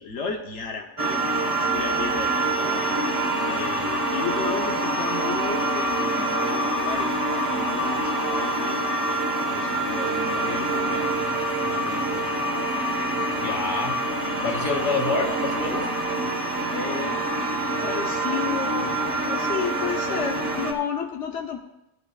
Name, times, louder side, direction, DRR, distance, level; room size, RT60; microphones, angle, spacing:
voice 1, 0.0-2.9 3.4-8.9 9.5-11.2 11.6-12.3 12.8-13.5 14.2-14.4 14.7-14.9 16.7-17.2 17.8-21.6, left 6 dB, 85° left, 2 dB, 1.2 m, -33 dB
sound 1, 1.0-20.7, right 2 dB, 30° right, 1.5 m, -26 dB
voice 2, 13.4-14.0 14.4-15.9, left 3 dB, 45° left, 1 dB, 2.2 m, -27 dB
19.0 x 11.0 x 2.4 m, 0.88 s
omnidirectional pair, 1.1 m